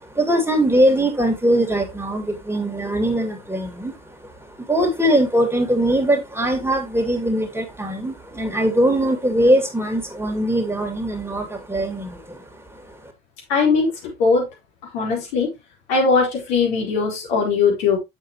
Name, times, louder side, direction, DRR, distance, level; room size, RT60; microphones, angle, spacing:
voice 1, 0.0-3.9 4.2-4.3 4.6-12.4 12.7-13.0, right 1 dB, 5° right, 2.3 m, -21 dB
voice 2, 13.5-14.5 14.9-15.5 15.9-18.0, left 4 dB, 75° left, 4.1 m, -20 dB
7.4 x 7.2 x 3.0 m
hypercardioid pair, 60°, 33 cm